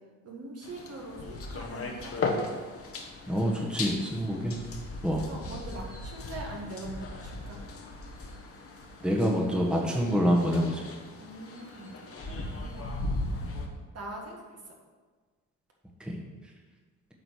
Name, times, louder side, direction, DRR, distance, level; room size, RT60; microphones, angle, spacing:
voice 1, 0.2-2.2 5.3-7.6 11.2-13.0 13.9-14.8, right 1 dB, 50° right, 0 dB, 1.9 m, -42 dB
sound 1, 0.6-13.7, left 2 dB, 45° left, 1.3 m, -37 dB
voice 2, 3.3-4.6 5.0-5.2 9.0-10.8 16.0-16.2, equal, 5° right, -1 dB, 1.4 m, -26 dB
8.0 x 3.9 x 6.4 m, 1.4 s
cardioid pair, 75°, 32 cm